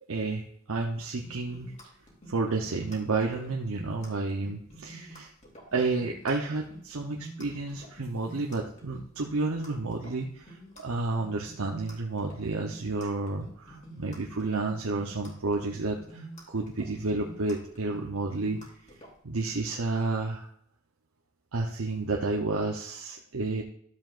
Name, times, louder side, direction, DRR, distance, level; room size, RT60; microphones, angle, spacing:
voice 1, 0.1-1.7 2.3-5.3 5.7-18.6 18.9-20.5 21.5-23.6, right 3 dB, 80° right, 0 dB, 0.9 m, -31 dB
sound 1, 1.2-19.1, right 1 dB, 35° left, 2.8 m, -48 dB
12.5 x 7.7 x 2.5 m, 0.67 s
head